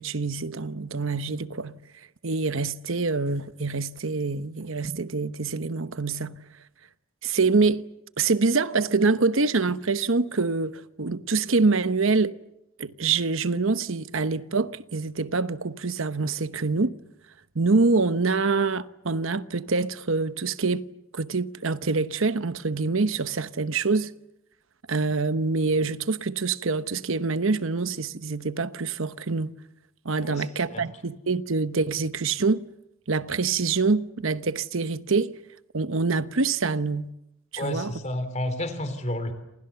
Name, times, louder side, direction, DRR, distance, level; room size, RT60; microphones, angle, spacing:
voice 1, 0.0-1.8 2.2-6.3 7.2-7.9 8.2-12.4 12.8-17.0 17.5-20.8 21.1-24.1 24.9-29.6 30.0-32.6 33.1-35.4 35.7-37.1 37.5-37.9, right 4 dB, 70° right, 1.0 m, -25 dB
voice 2, 30.2-30.9 37.6-39.3, left 1 dB, 35° left, 3.3 m, -31 dB
28.5 x 28.0 x 7.0 m
head